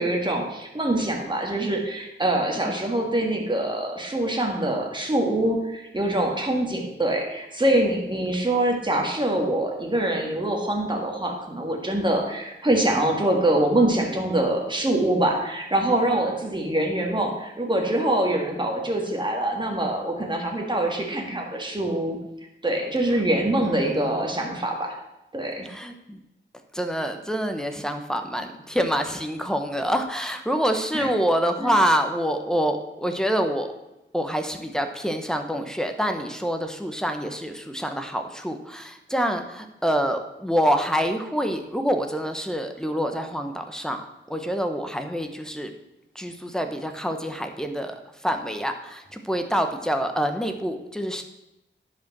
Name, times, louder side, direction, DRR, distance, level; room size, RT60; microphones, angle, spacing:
voice 1, 0.0-22.2 22.6-25.0 25.3-25.7 30.9-31.1 31.6-31.7, right 1 dB, 25° right, 1 dB, 1.9 m, -24 dB
voice 2, 23.6-24.1 25.6-26.2 26.7-33.7 34.1-45.7 46.1-51.2, equal, 5° left, 5 dB, 1.0 m, -26 dB
10.0 x 5.1 x 6.1 m, 0.91 s
wide cardioid pair, 75°, 20 cm